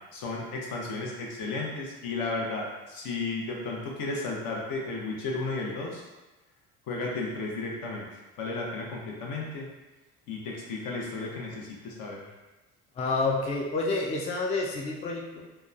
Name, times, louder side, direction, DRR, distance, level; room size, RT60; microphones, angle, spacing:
voice 1, 0.1-6.0 6.9-8.0 8.4-9.7 10.3-12.3, left 3 dB, 60° left, -2 dB, 0.8 m, -33 dB
voice 2, 13.0-15.4, left 3 dB, 20° left, -1 dB, 0.3 m, -29 dB
2.9 x 2.2 x 2.4 m, 1.1 s
supercardioid pair, 80°, 37 cm